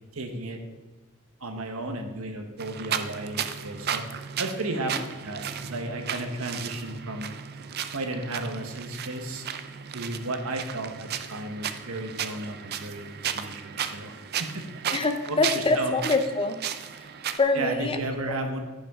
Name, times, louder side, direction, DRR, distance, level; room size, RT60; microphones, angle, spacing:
voice 1, 0.1-0.6 1.4-4.0 4.4-4.9 5.2-7.3 7.9-9.5 9.9-13.1 13.3-14.8 15.2-15.9 17.5-18.6, right 2 dB, 75° right, 4 dB, 1.3 m, -33 dB
sound 1, 2.6-17.4, right 8 dB, 50° right, 0.5 m, -35 dB
voice 2, 14.9-16.6 17.4-18.0, left 3 dB, 25° left, 7 dB, 0.6 m, -24 dB
14.5 x 5.7 x 3.7 m, 1.2 s
head